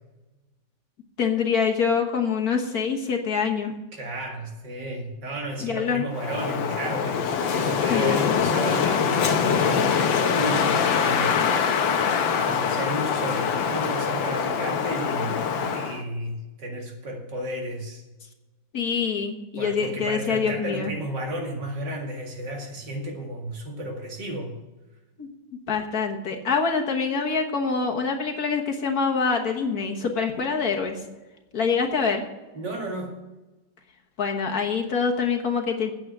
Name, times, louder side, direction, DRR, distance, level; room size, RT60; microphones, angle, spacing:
voice 1, 1.2-3.7 5.6-6.0 7.9-8.3 18.7-20.9 25.2-25.3 25.7-31.0 31.5-32.2 34.2-35.9, left 5 dB, 55° left, 2 dB, 1.6 m, -25 dB
voice 2, 3.9-11.8 12.3-18.0 19.6-24.5 32.5-33.1, right 1 dB, 65° right, 0 dB, 2.8 m, -33 dB
Wind, 6.1-16.0, left 6 dB, 90° left, 1.7 m, -24 dB
9.0 x 8.4 x 7.7 m, 1.1 s
omnidirectional pair, 2.0 m